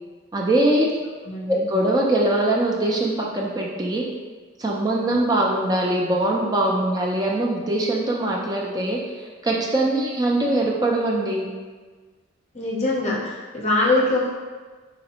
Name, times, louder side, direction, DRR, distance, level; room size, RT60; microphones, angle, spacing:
voice 1, 0.3-0.9 1.5-4.1 4.6-9.0 9.4-11.5, right 1 dB, 20° right, -3 dB, 0.4 m, -22 dB
voice 2, 1.3-1.6 12.5-14.3, left 2 dB, 30° left, -4 dB, 0.6 m, -23 dB
4.0 x 2.5 x 2.9 m, 1.4 s
head